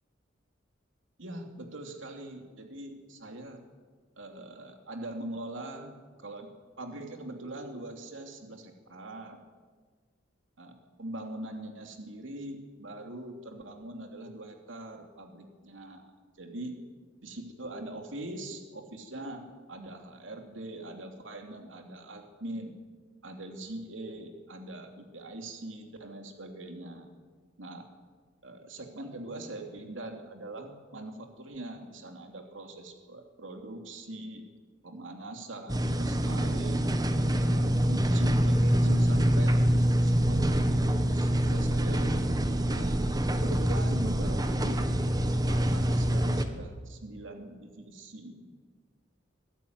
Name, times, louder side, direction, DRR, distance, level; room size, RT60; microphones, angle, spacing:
voice 1, 1.2-3.6 4.2-6.5 6.8-9.4 10.6-16.8 17.2-22.7 23.2-27.1 27.6-27.9 28.4-34.4 34.8-36.8 37.4-42.1 42.7-43.0 43.4-44.9 45.5-48.6, right 1 dB, 85° right, 4 dB, 2.7 m, -42 dB
sound 1, 35.7-46.4, equal, 20° right, 1.4 m, -25 dB
23.5 x 13.0 x 9.4 m, 1.5 s
head